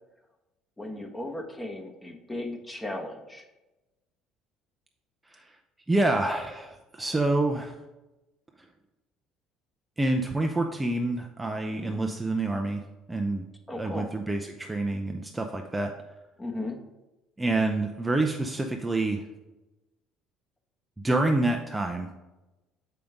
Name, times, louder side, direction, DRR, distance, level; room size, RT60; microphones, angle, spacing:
voice 1, 0.8-3.4 11.7-12.0 13.7-14.1 16.4-16.8, left 1 dB, 15° left, 2 dB, 1.2 m, -36 dB
voice 2, 5.9-7.8 10.0-12.8 13.1-13.4 13.8-15.9 17.4-19.2 21.0-22.1, right 2 dB, 15° right, 3 dB, 0.6 m, -27 dB
6.8 x 5.1 x 3.6 m, 1.0 s
hypercardioid pair, 70°, 0 cm